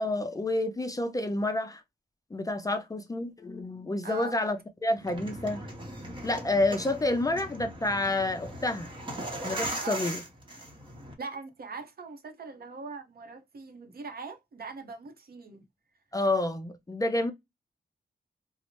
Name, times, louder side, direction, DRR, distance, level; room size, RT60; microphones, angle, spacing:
voice 1, 0.0-1.8 2.3-5.6 6.2-8.9 9.4-10.2 16.1-17.3, left 2 dB, 20° left, 0.4 m, -29 dB
voice 2, 4.0-4.3 9.8-10.0 11.2-15.6, right 4 dB, 65° right, 0.7 m, -41 dB
sound 1, 5.0-11.1, right 1 dB, 30° right, 0.8 m, -38 dB
2.7 x 2.0 x 2.9 m
wide cardioid pair, 130°, 17 cm